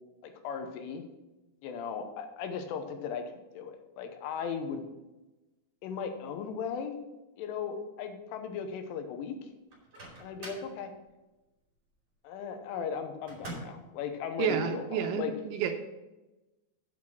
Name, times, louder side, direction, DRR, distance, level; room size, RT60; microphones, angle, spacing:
voice 1, 0.2-1.0 1.6-4.8 5.8-7.0 7.4-9.5 10.2-10.9 12.2-15.3, left 6 dB, 80° left, 7 dB, 3.3 m, -37 dB
Microwave oven, 9.7-10.7 13.3-13.9, right 1 dB, 25° right, 2.9 m, -44 dB
voice 2, 14.4-15.8, right 8 dB, 85° right, 6 dB, 3.1 m, -30 dB
8.4 x 6.8 x 6.0 m, 1.1 s
omnidirectional pair, 5.8 m